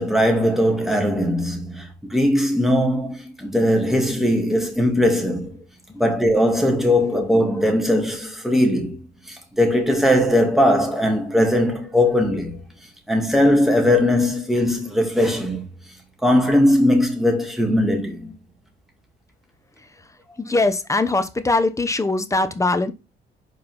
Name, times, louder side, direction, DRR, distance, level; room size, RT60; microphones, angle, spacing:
voice 1, 0.0-5.6 5.9-9.0 9.3-12.6 13.1-15.7 16.2-18.3, left 1 dB, ahead, 2.3 m, -19 dB
voice 2, 20.4-22.9, left 2 dB, 15° left, 1.0 m, -21 dB
5.4 x 4.4 x 5.5 m
cardioid pair, 90°, 20 cm